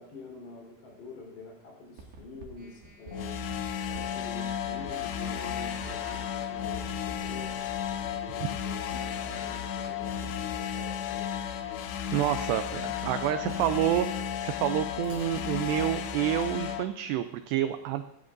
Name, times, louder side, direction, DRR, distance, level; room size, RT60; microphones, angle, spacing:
voice 1, 0.0-3.4 3.9-7.6 8.0-11.3, left 2 dB, 60° left, -2 dB, 5.9 m, -46 dB
sound 1, 2.0-8.1, right 3 dB, 65° right, 4.1 m, -49 dB
sound 2, 3.1-16.8, left 8 dB, 75° left, 2.7 m, -34 dB
sound 3, 11.4-12.2 13.1-14.2 14.8-15.9, equal, 25° right, 6.4 m, -55 dB
voice 2, 12.1-18.0, right 12 dB, 85° right, 9 dB, 2.4 m, -28 dB
23.5 x 13.5 x 2.6 m, 0.78 s
omnidirectional pair, 5.5 m